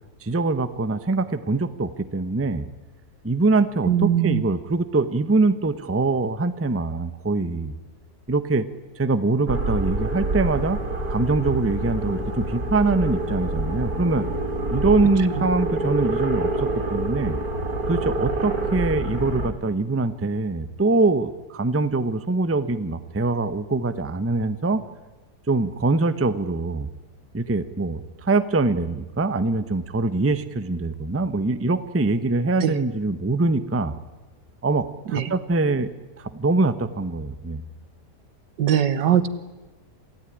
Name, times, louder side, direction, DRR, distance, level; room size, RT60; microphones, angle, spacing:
voice 1, 0.2-2.7 3.2-7.7 8.3-8.7 9.0-10.8 11.1-14.3 14.7-17.4 17.9-24.8 25.5-26.9 27.3-33.9 34.6-35.9 36.2-37.6, right 3 dB, 10° right, 12 dB, 0.6 m, -23 dB
voice 2, 3.9-4.4 32.6-32.7 35.1-35.3 38.6-39.3, right 10 dB, 85° right, 13 dB, 1.9 m, -20 dB
sound 1, 9.5-19.5, right 2 dB, 60° right, 3.4 m, -27 dB
27.5 x 16.0 x 10.0 m, 1.2 s
omnidirectional pair, 1.8 m